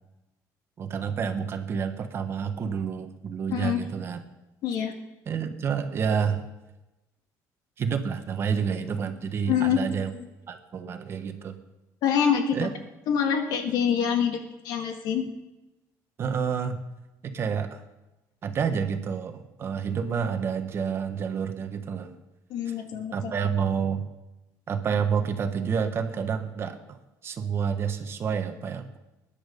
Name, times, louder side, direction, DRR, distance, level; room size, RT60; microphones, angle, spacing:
voice 1, 0.8-4.2 5.3-6.5 7.8-10.1 10.5-11.5 12.5-12.7 16.2-16.8 17.2-17.8 18.4-22.2 22.7-22.8 23.1-24.1 24.7-27.0 27.2-29.0, right 6 dB, 35° right, 7 dB, 1.3 m, -29 dB
voice 2, 3.5-3.8 4.6-4.9 9.5-9.8 10.1-10.3 12.0-12.7 13.1-15.3 22.5-23.3, left 8 dB, 75° left, 5 dB, 2.1 m, -25 dB
20.5 x 10.5 x 5.3 m, 1.0 s
cardioid pair, 155°, 7 cm